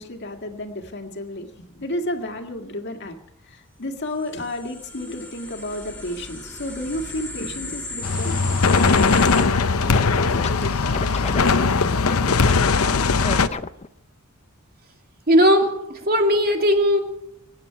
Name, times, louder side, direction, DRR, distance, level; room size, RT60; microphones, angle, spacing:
voice 1, 0.0-3.2 3.4-13.1, left 1 dB, 55° left, 4 dB, 1.9 m, -32 dB
sound 1, 4.1-9.4, left 2 dB, 5° left, 6.8 m, -35 dB
sound 2, 8.0-13.5, left 4 dB, 75° left, 0.8 m, -19 dB
Scratching (performance technique), 8.6-10.5 10.9-12.5 13.2-13.9, left 4 dB, 30° left, 0.6 m, -30 dB
voice 2, 15.3-17.0, equal, 45° right, 3 dB, 2.3 m, -18 dB
24.0 x 9.8 x 5.8 m, 0.83 s
head